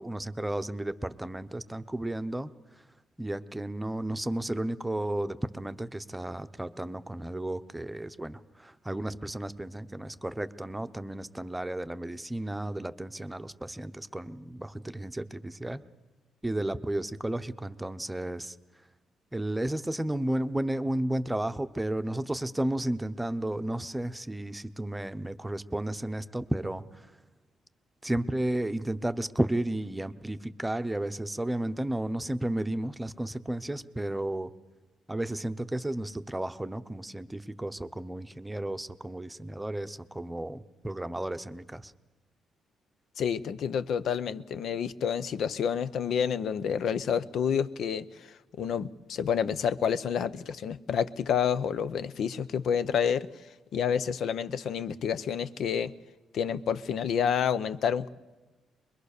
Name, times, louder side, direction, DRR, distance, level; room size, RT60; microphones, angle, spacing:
voice 1, 0.0-2.5 3.2-15.8 16.4-18.6 19.3-27.1 28.0-34.5 35.1-41.9, right 1 dB, 10° right, 11 dB, 0.9 m, -33 dB
voice 2, 43.2-53.3 53.7-55.9 56.3-58.1, left 7 dB, 65° left, 14 dB, 0.8 m, -29 dB
23.0 x 22.0 x 6.7 m, 1.2 s
cardioid pair, 90°, 0 cm